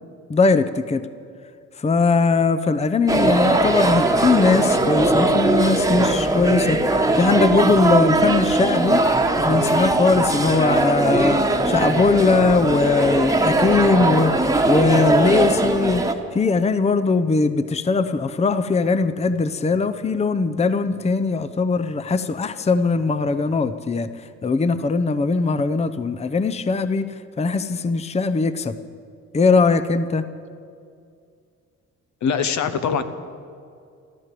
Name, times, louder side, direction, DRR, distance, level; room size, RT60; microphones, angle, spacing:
voice 1, 0.3-1.0 1.8-9.0 9.4-16.0 16.3-24.1 24.4-27.1 27.4-28.7 29.3-30.2, left 4 dB, 20° left, 11 dB, 0.7 m, -20 dB
sound 1, 3.1-16.1, right 2 dB, 10° right, 1.2 m, -20 dB
voice 2, 32.2-33.0, left 6 dB, 70° left, 10 dB, 1.1 m, -22 dB
14.0 x 13.5 x 7.6 m, 2.3 s
cardioid pair, 90°, 30 cm